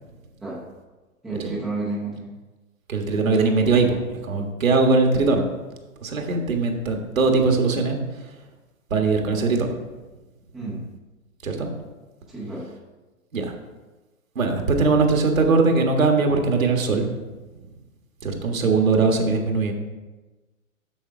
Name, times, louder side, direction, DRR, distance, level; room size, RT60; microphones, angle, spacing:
voice 1, 1.2-2.3 10.5-10.8 12.3-12.7, right 2 dB, ahead, -7 dB, 0.3 m, -31 dB
voice 2, 2.9-5.4 6.0-8.0 8.9-9.7 11.4-11.7 13.3-13.5 14.3-17.1 18.2-19.7, right 3 dB, 70° right, 3 dB, 1.6 m, -20 dB
7.2 x 6.6 x 4.7 m, 1.2 s
figure-of-eight pair, 115°, 41 cm